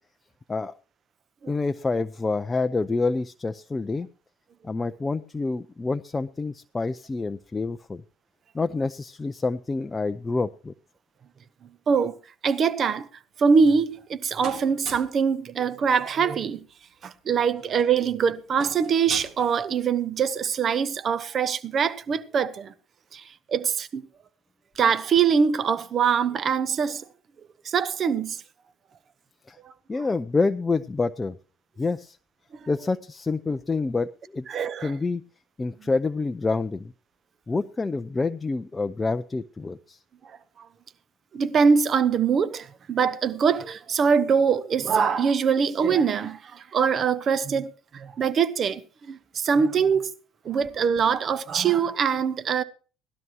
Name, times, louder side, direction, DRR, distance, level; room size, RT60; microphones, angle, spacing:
voice 1, 1.5-4.1 4.6-8.0 8.5-10.7 29.5-29.6 29.9-31.4 31.8-32.2 32.7-34.5 34.8-35.2 35.6-36.9 37.5-40.0, left 3 dB, 25° left, 0.5 m, -27 dB
voice 2, 12.4-13.1 13.4-16.6 17.0-22.7 23.1-23.2 23.5-24.1 24.8-27.0 27.6-28.4 34.5-34.9 41.3-48.8 49.1-50.1 50.4-52.6, right 6 dB, 45° right, 0.9 m, -23 dB
sound 1, 13.3-14.1 14.4-15.2 16.6-16.7 16.9-17.1 17.4-20.0, right 5 dB, 70° right, 3.3 m, -41 dB
17.5 x 12.5 x 3.0 m
hypercardioid pair, 60°, 0 cm